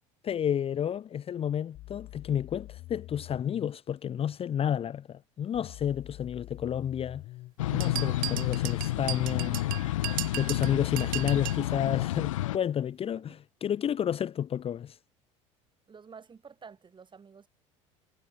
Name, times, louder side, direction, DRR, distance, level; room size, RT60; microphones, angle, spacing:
voice 1, 0.2-7.2 7.7-9.6 10.3-15.0, left 9 dB, 35° left, 0.8 m, -31 dB
sound 1, 1.7-3.7 5.5-7.5 9.4-9.5, left 16 dB, 60° left, 2.7 m, -46 dB
sound 2, 7.6-12.6, left 16 dB, 85° left, 0.4 m, -30 dB
sound 3, 7.8-11.7, right 18 dB, 60° right, 2.9 m, -36 dB
voice 2, 15.9-17.5, right 6 dB, 30° right, 5.2 m, -50 dB
hypercardioid pair, 75°, 16 cm